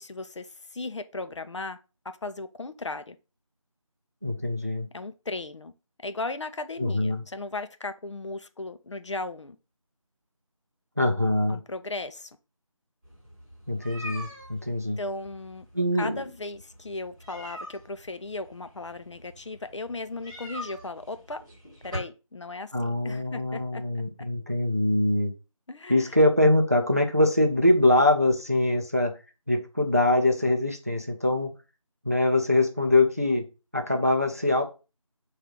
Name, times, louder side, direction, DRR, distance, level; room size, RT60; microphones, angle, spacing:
voice 1, 0.0-1.8 2.2-3.2 4.9-5.7 6.0-9.6 11.5-12.3 15.0-15.7 16.0-21.4 21.8-24.0 25.7-26.1, left 2 dB, 60° left, 0.4 m, -36 dB
voice 2, 4.2-4.9 6.8-7.2 11.0-11.6 13.7-15.0 15.7-16.2 22.7-25.3 25.9-29.1 29.5-31.5 32.0-33.4 33.7-34.6, left 1 dB, 30° right, 0.4 m, -23 dB
sound 1, 13.0-22.0, equal, 10° right, 1.3 m, -44 dB
3.7 x 2.4 x 4.5 m
figure-of-eight pair, 170°, 18 cm